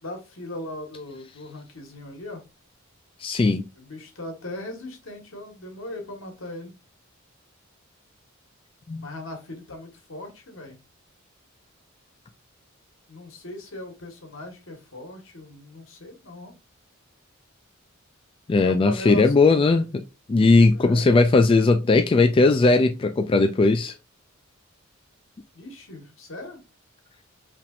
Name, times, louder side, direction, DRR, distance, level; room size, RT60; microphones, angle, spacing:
voice 1, 0.0-2.4 3.7-6.8 9.0-10.8 13.1-16.5 18.6-19.3 20.7-21.1 25.5-26.6, left 1 dB, 70° left, 1.6 m, -38 dB
voice 2, 3.2-3.6 8.9-9.1 18.5-20.0 20.3-23.9, left 3 dB, 25° left, 0.3 m, -18 dB
5.6 x 3.4 x 2.5 m
head